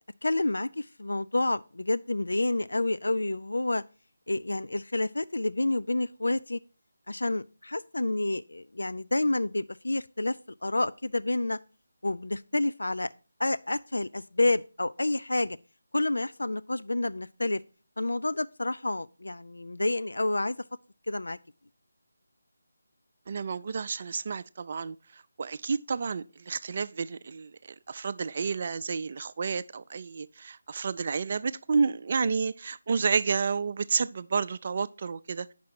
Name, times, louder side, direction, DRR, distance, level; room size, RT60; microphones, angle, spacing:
voice 1, 0.2-3.8 4.3-6.6 7.1-10.4 10.6-11.6 12.0-13.1 13.4-15.6 15.9-17.6 18.0-20.6 21.1-21.4, left 2 dB, 75° left, 0.3 m, -29 dB
voice 2, 23.3-27.6 27.9-35.5, right 5 dB, 40° right, 0.4 m, -30 dB
8.4 x 5.9 x 4.5 m
figure-of-eight pair, 160°, 0 cm